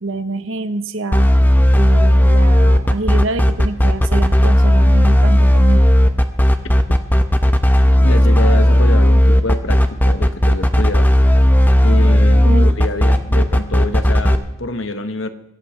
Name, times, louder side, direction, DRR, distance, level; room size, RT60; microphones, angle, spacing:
voice 1, 0.0-1.3 1.8-5.8 12.4-12.7, right 2 dB, 70° right, 11 dB, 1.0 m, -25 dB
sound 1, 1.1-14.4, equal, 10° left, 0.8 m, -12 dB
voice 2, 8.0-11.1 11.8-15.3, left 2 dB, 70° left, 9 dB, 1.2 m, -26 dB
25.5 x 14.0 x 3.3 m, 0.88 s
head